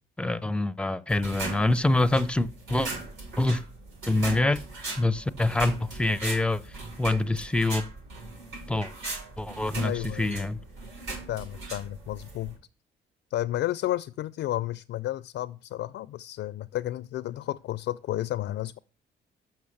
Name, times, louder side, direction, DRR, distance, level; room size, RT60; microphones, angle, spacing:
voice 1, 0.2-2.9 3.4-3.6 4.1-4.6 5.0-6.6 7.0-7.9 8.7-8.9 9.4-10.6, left 2 dB, 5° left, 0.5 m, -25 dB
sound 1, 1.1-12.6, right 3 dB, 85° right, 5.9 m, -39 dB
voice 2, 9.8-10.5 11.3-12.5 13.3-18.8, left 14 dB, 70° left, 0.4 m, -32 dB
6.4 x 6.1 x 7.1 m
cardioid pair, 90°, 20 cm